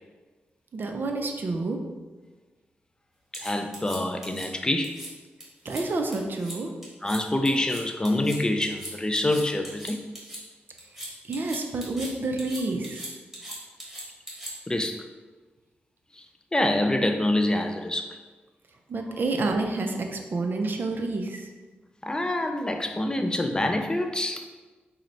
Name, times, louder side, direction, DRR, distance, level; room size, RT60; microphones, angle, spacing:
voice 1, 0.7-1.8 5.6-6.7 11.2-13.0 18.9-21.5, right 3 dB, 55° right, 4 dB, 0.5 m, -29 dB
voice 2, 3.3-5.0 7.0-10.0 14.7-15.0 16.2-16.3 16.5-18.2 22.0-24.4, left 1 dB, 20° left, 5 dB, 0.3 m, -26 dB
sound 1, 3.3-4.5 4.8-5.1 5.4-5.8 6.1-6.6 6.8-7.2 7.4-10.4 10.8-12.1 12.4-14.8, equal, 10° right, 1.4 m, -39 dB
3.9 x 2.1 x 4.3 m, 1.3 s
cardioid pair, 70°, 4 cm